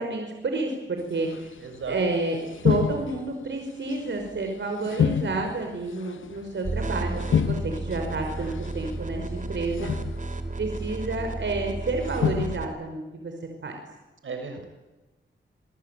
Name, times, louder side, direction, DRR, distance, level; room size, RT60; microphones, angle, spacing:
voice 1, 0.0-1.5 1.9-2.4 2.6-9.9 10.6-13.3 13.6-13.8, right 3 dB, 70° right, 4 dB, 5.4 m, -30 dB
sound 1, 1.3-1.5 1.7-2.0 2.5-3.5 3.9-4.5 4.8-6.7 7.2-8.7 9.0-9.3 9.7-10.4 11.1-11.7 12.0-12.7, left 8 dB, 80° left, 0.9 m, -28 dB
voice 2, 1.6-2.0 14.2-14.7, right 5 dB, 85° right, 5 dB, 6.8 m, -35 dB
sound 2, 6.6-12.6, right 2 dB, 40° right, 3.6 m, -33 dB
27.0 x 22.5 x 9.3 m, 1.1 s
wide cardioid pair, 85°, 20 cm